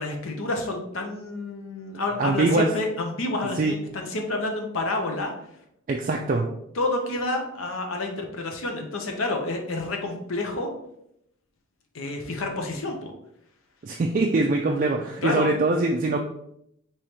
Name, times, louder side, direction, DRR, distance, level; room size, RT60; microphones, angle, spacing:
voice 1, 0.0-5.3 6.8-10.7 11.9-13.1 15.2-15.5, left 2 dB, 70° left, 3 dB, 0.7 m, -29 dB
voice 2, 2.2-2.7 3.6-3.7 5.9-6.5 13.8-16.2, right 2 dB, 40° right, 0 dB, 0.3 m, -23 dB
4.9 x 3.1 x 2.9 m, 0.76 s
head